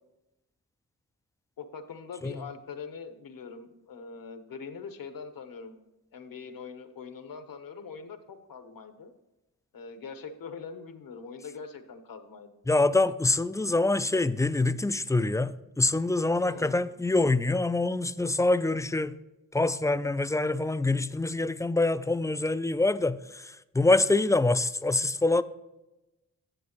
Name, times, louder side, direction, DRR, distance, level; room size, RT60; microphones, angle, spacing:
voice 1, 1.6-5.8 6.1-9.1 9.7-12.5 16.4-16.8, left 5 dB, 70° left, 1.1 m, -43 dB
voice 2, 12.7-19.1 19.5-25.4, left 2 dB, 10° left, 0.3 m, -25 dB
10.5 x 7.8 x 3.0 m
cardioid pair, 70°, 35 cm